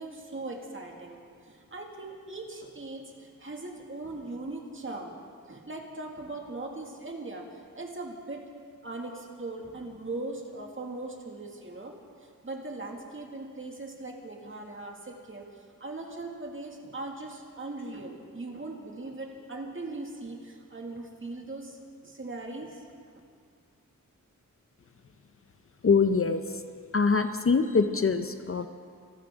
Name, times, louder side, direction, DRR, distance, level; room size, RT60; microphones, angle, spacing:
voice 1, 0.0-5.1 5.5-8.5 8.8-12.0 12.4-22.8, right 2 dB, 40° right, 1 dB, 2.0 m, -40 dB
voice 2, 25.8-26.4 26.9-28.7, left 5 dB, 45° left, 9 dB, 0.6 m, -24 dB
26.0 x 12.5 x 3.6 m, 2.1 s
wide cardioid pair, 105°, 32 cm